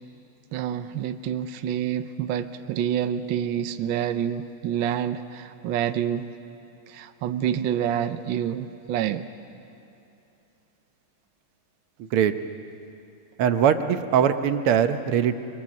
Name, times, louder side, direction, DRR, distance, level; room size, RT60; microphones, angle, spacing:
voice 1, 0.5-6.3 6.9-9.3, right 10 dB, 70° right, 9 dB, 1.4 m, -27 dB
voice 2, 12.0-12.3 13.4-15.3, right 8 dB, 90° right, 9 dB, 1.8 m, -21 dB
25.5 x 23.5 x 7.5 m, 2.7 s
omnidirectional pair, 2.3 m